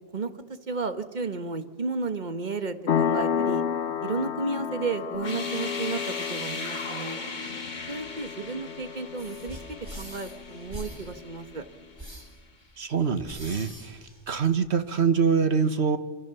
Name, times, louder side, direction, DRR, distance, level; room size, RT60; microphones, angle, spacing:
voice 1, 0.7-3.6 4.0-7.2 7.9-11.7, right 4 dB, 40° right, 9 dB, 1.7 m, -33 dB
sound 1, 2.9-11.2, left 7 dB, 80° left, 1.3 m, -32 dB
sound 2, 5.1-12.0, left 3 dB, 45° left, 1.7 m, -39 dB
sound 3, 9.2-14.8, equal, 25° right, 4.1 m, -44 dB
voice 2, 12.8-14.0 14.3-16.0, right 6 dB, 75° right, 10 dB, 1.7 m, -24 dB
26.5 x 26.5 x 7.1 m, 1.3 s
omnidirectional pair, 1.1 m